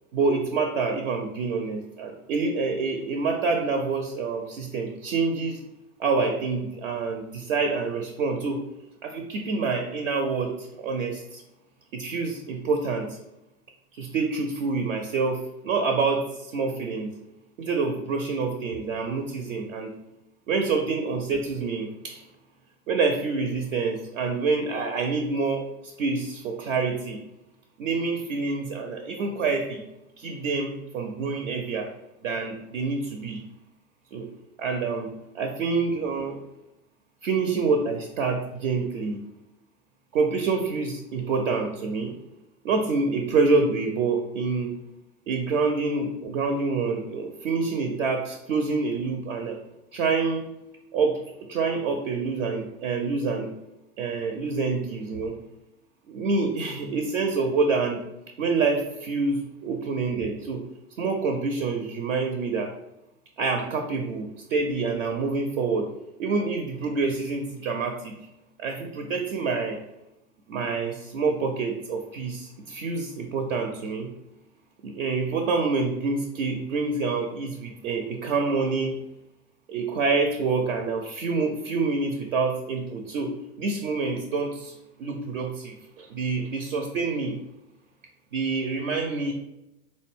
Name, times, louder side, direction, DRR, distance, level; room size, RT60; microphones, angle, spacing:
voice 1, 0.1-5.6 6.0-8.6 9.0-11.4 11.9-13.2 13.9-17.1 17.6-19.9 20.5-22.2 22.9-27.2 27.8-29.8 30.2-31.9 32.2-33.4 34.1-34.3 34.6-36.4 37.2-39.2 40.1-42.1 42.6-44.8 45.3-49.6 49.9-50.5 50.9-51.2 51.5-53.5 54.0-55.4 56.1-58.0 58.4-60.6 61.0-62.7 63.4-65.9 66.2-68.1 68.6-69.8 70.5-74.1 74.8-79.0 79.7-83.3 83.6-84.7 85.0-87.4 88.3-89.3, right 4 dB, 55° right, 4 dB, 0.5 m, -27 dB
3.8 x 2.0 x 3.4 m, 0.92 s
figure-of-eight pair, 95°, 48 cm